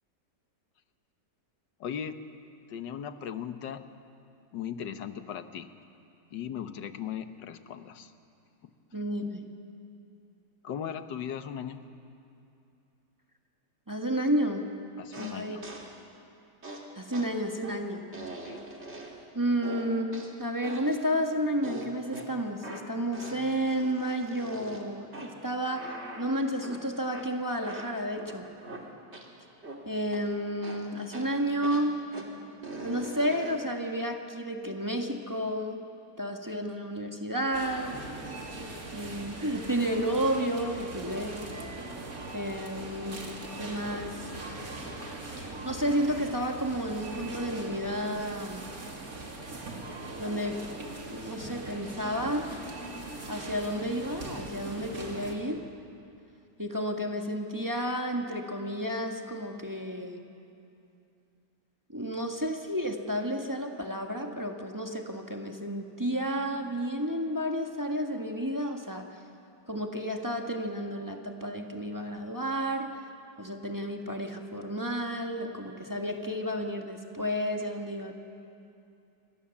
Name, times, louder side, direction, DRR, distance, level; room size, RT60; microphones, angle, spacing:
voice 1, 1.8-2.3 2.7-3.9 4.5-5.7 6.3-8.1 10.6-11.9 15.0-15.6 18.4-18.6, left 8 dB, 85° left, 10 dB, 1.7 m, -38 dB
voice 2, 8.9-9.5 13.9-14.6 15.2-15.6 17.0-18.1 19.3-28.5 29.8-32.0 32.8-35.8 36.2-38.0 38.9-41.4 42.3-43.2 43.6-44.3 45.4-48.7 50.2-50.6 51.1-52.5 53.3-55.6 56.6-60.2 61.9-69.1 69.7-73.0 73.4-78.1, equal, 10° right, 2 dB, 1.5 m, -31 dB
sound 1, 15.1-16.0 16.6-19.3 19.6-21.1 21.6-29.3 29.6-30.3 30.6-33.7, right 2 dB, 40° right, 2.8 m, -43 dB
sound 2, 37.5-55.3, right 2 dB, 55° right, 3.2 m, -41 dB
27.5 x 23.5 x 7.2 m, 2.7 s
omnidirectional pair, 1.9 m